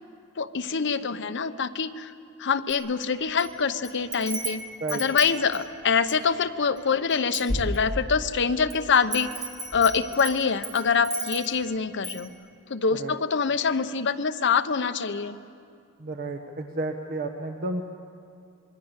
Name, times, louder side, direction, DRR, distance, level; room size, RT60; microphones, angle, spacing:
voice 1, 0.4-2.1 2.4-4.6 4.9-9.3 9.7-12.3 12.7-15.4, left 5 dB, 55° left, 10 dB, 0.8 m, -25 dB
Wind chime, 2.7-3.5 3.8-6.3 6.8-6.9 7.1-8.2 8.7-11.6 12.0-12.3, right 2 dB, 20° right, 3.3 m, -34 dB
voice 2, 16.0-17.8, right 2 dB, 45° right, 4 dB, 1.2 m, -31 dB
26.5 x 21.5 x 8.1 m, 2.4 s
head